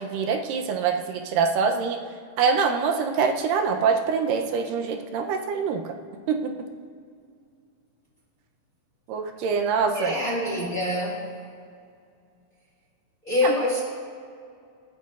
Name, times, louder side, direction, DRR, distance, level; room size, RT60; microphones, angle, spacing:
voice 1, 0.0-2.0 2.4-5.9 6.3-6.6 9.1-10.1 13.4-13.6, right 5 dB, 80° right, 4 dB, 2.4 m, -24 dB
voice 2, 9.9-11.2 13.2-13.8, left 2 dB, 35° left, -4 dB, 1.7 m, -25 dB
27.0 x 10.5 x 2.5 m, 2.3 s
omnidirectional pair, 3.9 m